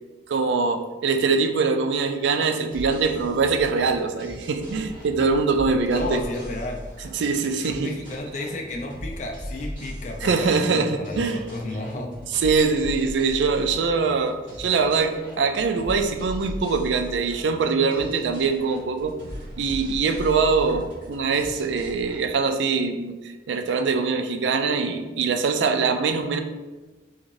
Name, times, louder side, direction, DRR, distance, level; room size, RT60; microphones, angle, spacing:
voice 1, 0.3-6.2 7.1-7.9 10.2-11.4 12.4-19.1 19.6-23.2 23.5-26.4, right 4 dB, 85° right, 6 dB, 0.4 m, -23 dB
sound 1, 2.7-22.2, equal, 45° right, 1.4 m, -39 dB
voice 2, 5.9-6.8 7.6-12.1, left 1 dB, 40° left, 1 dB, 0.4 m, -32 dB
3.6 x 3.1 x 2.6 m, 1.2 s
head